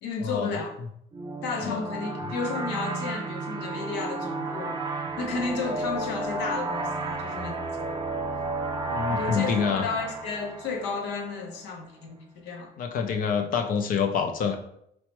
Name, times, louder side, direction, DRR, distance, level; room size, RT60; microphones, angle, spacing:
voice 1, 0.0-0.7 1.4-4.8 5.2-7.5 9.1-12.7, left 4 dB, 85° left, 0.7 m, -32 dB
sound 1, 1.1-11.5, right 2 dB, 25° right, 0.4 m, -32 dB
voice 2, 8.9-9.9 12.8-14.6, left 6 dB, 55° left, 0.4 m, -26 dB
4.5 x 2.0 x 2.9 m
cardioid pair, 110°, 17 cm